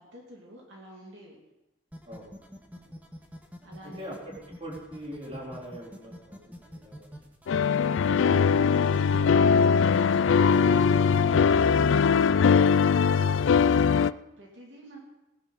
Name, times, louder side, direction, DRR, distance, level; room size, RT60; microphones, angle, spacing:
voice 1, 0.0-1.4 2.8-2.9 3.6-4.1 7.2-7.3 7.8-10.6 11.0-12.4 13.7-15.0, right 1 dB, 70° right, -2 dB, 2.7 m, -49 dB
sound 1, 1.9-11.5, equal, 10° right, 1.6 m, -45 dB
voice 2, 4.0-4.3 4.6-6.4 6.6-7.2 11.5-11.7 12.3-12.6 13.1-13.3, equal, 30° right, -3 dB, 3.8 m, -42 dB
sound 2, 7.5-14.1, left 6 dB, 75° left, 0.3 m, -21 dB
18.0 x 11.0 x 4.1 m, 0.95 s
head